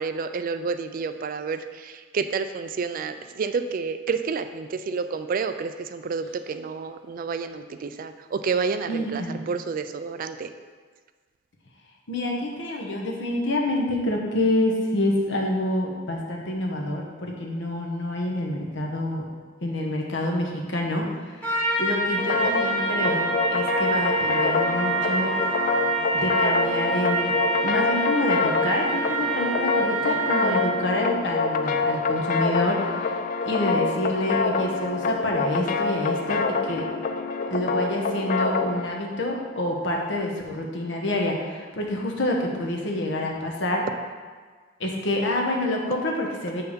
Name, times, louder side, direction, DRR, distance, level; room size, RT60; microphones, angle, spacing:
voice 1, 0.0-9.2 9.5-10.5, right 5 dB, 45° right, 10 dB, 0.3 m, -29 dB
voice 2, 8.8-9.4 12.1-19.2 19.6-21.4 21.8-25.4 26.1-27.4 27.6-33.2 33.4-36.9 37.5-43.9 44.8-46.6, left 1 dB, 65° left, 0 dB, 1.1 m, -27 dB
Trumpet, 21.4-30.8, right 3 dB, 10° left, 1.3 m, -27 dB
sound 1, 22.2-38.9, left 4 dB, 45° left, 0.4 m, -26 dB
6.9 x 4.5 x 5.0 m, 1.5 s
head